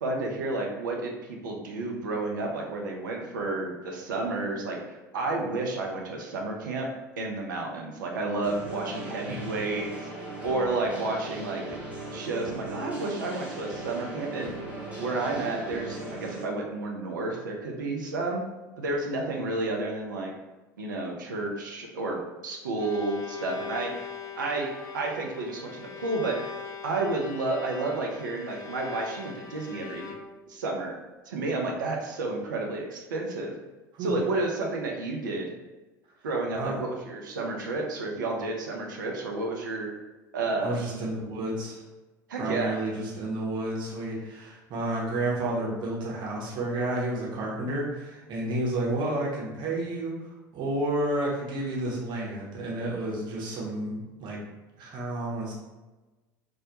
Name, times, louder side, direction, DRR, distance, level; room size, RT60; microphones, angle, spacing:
voice 1, 0.0-6.9 7.2-10.1 10.4-11.6 12.1-14.5 15.0-18.4 18.8-20.3 20.8-23.9 24.4-26.5 26.8-30.1 30.5-31.0 31.3-33.5 34.0-35.5 36.2-39.9 40.3-40.8 42.3-42.8, right 2 dB, 80° right, 0 dB, 0.5 m, -31 dB
sound 1, 8.4-16.4, right 2 dB, 15° right, 0.8 m, -38 dB
Bowed string instrument, 22.5-30.6, left 6 dB, 35° left, 0.4 m, -41 dB
voice 2, 40.6-41.8 42.4-50.1 50.5-54.4 54.8-55.5, right 1 dB, 50° right, -4 dB, 0.9 m, -31 dB
2.2 x 2.1 x 2.8 m, 1.1 s
hypercardioid pair, 75°, 10 cm